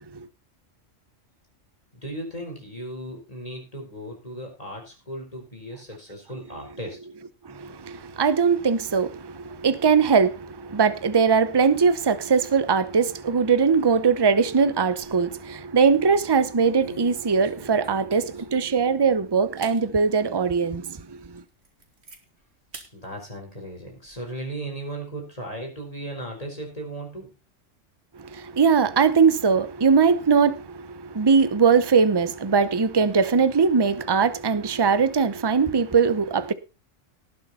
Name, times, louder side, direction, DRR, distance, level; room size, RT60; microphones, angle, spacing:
voice 1, 1.9-7.0 22.9-27.3, right 1 dB, 30° left, 4.5 m, -36 dB
voice 2, 7.4-21.4 28.2-36.5, right 5 dB, 25° right, 0.7 m, -21 dB
sound 1, 15.0-15.4 15.8-16.0 16.6-18.6 19.1-19.2 19.6-19.8 20.3-20.4 20.9-21.0 21.4-22.2 22.7-22.9 23.3-24.2, right 2 dB, 55° right, 2.7 m, -46 dB
19.0 x 6.8 x 4.2 m
omnidirectional pair, 1.3 m